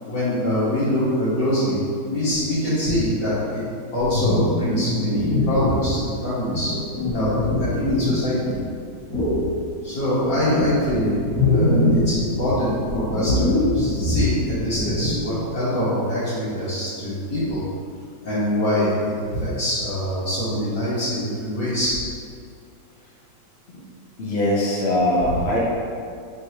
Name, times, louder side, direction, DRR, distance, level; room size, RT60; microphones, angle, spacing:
voice 1, 0.0-3.6 3.9-6.7 7.1-7.3 7.6-8.4 9.8-11.1 11.5-17.6 18.2-22.0, equal, 80° left, -13 dB, 1.7 m, -24 dB
sound 1, 4.0-5.9 6.5-8.6 9.1-9.4 10.0-12.2 12.4-15.3, left 2 dB, 10° left, 1.2 m, -23 dB
voice 2, 24.2-25.6, left 1 dB, 50° left, -5 dB, 0.9 m, -21 dB
5.3 x 3.1 x 2.8 m, 2.3 s
omnidirectional pair, 1.9 m